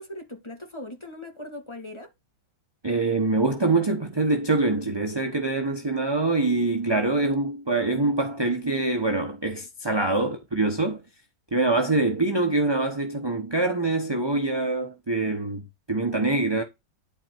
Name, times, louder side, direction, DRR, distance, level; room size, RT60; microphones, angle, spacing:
voice 1, 0.0-2.1, left 1 dB, 15° left, 2.0 m, -40 dB
voice 2, 2.8-11.0 11.5-16.6, right 2 dB, 20° right, 0.8 m, -24 dB
11.5 x 4.2 x 4.5 m
omnidirectional pair, 2.2 m